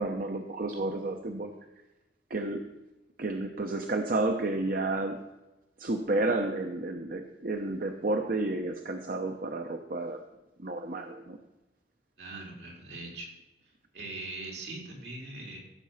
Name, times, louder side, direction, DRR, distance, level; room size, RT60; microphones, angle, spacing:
voice 1, 0.0-1.5 2.3-2.6 3.2-5.2 5.8-10.2 10.6-11.4, right 2 dB, 55° right, 5 dB, 0.9 m, -31 dB
voice 2, 12.2-13.3 13.6-15.6, right 2 dB, 75° right, -2 dB, 3.9 m, -41 dB
15.0 x 7.4 x 5.7 m, 1.0 s
head